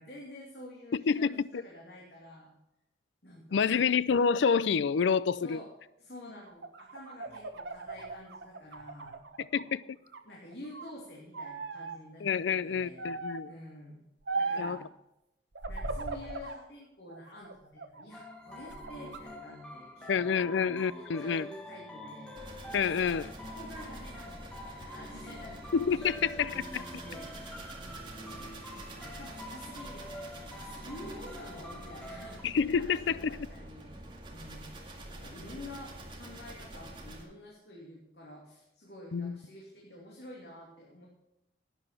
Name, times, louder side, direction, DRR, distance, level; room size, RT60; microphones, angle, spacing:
voice 1, 0.0-2.5 3.2-3.8 5.4-5.7 6.0-9.2 10.2-12.2 12.6-13.0 13.4-14.0 14.3-14.9 15.7-20.4 20.9-22.3 22.8-22.9 23.4-27.8 28.2-30.2 30.5-34.0 34.3-34.7 35.1-41.1, left 1 dB, 60° left, 2.5 m, -49 dB
voice 2, 0.9-1.6 3.5-5.6 9.5-9.8 12.2-13.5 14.6-14.8 20.1-21.5 22.7-23.3 25.7-26.8 32.4-33.3 39.1-39.3, left 6 dB, 75° left, 0.4 m, -28 dB
sound 1, 6.5-9.7 10.1-10.9 11.3-12.0 13.0-13.5 14.3-14.8 15.6-16.6 17.1-18.1 18.5-19.2, right 3 dB, 75° right, 1.1 m, -38 dB
sound 2, 18.1-32.4, equal, 5° left, 1.7 m, -46 dB
sound 3, 22.4-37.2, right 1 dB, 25° right, 2.0 m, -46 dB
12.0 x 8.9 x 5.9 m
head